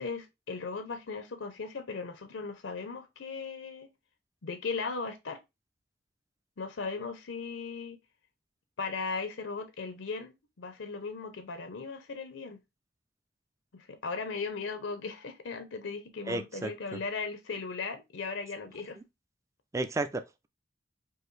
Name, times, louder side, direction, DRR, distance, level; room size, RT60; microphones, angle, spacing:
voice 1, 0.0-3.9 4.4-5.4 6.6-8.0 8.8-12.6 13.7-19.0, left 4 dB, 80° left, 0.6 m, -37 dB
voice 2, 16.3-17.0 19.7-20.5, right 2 dB, 15° right, 0.3 m, -33 dB
4.7 x 2.6 x 3.1 m
head